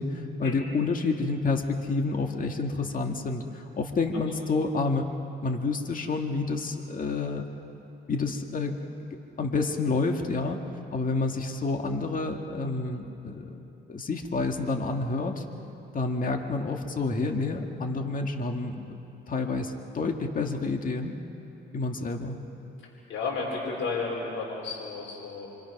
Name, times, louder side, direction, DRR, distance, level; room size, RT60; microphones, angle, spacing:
voice 1, 0.0-5.1 5.4-7.4 8.1-8.8 9.4-10.6 10.9-13.6 13.9-15.4 15.9-21.1 21.7-22.4, left 3 dB, 45° left, 3 dB, 2.1 m, -29 dB
voice 2, 23.1-25.5, left 4 dB, 75° left, -3 dB, 4.7 m, -32 dB
27.5 x 24.5 x 6.1 m, 2.9 s
cardioid pair, 90°, 20 cm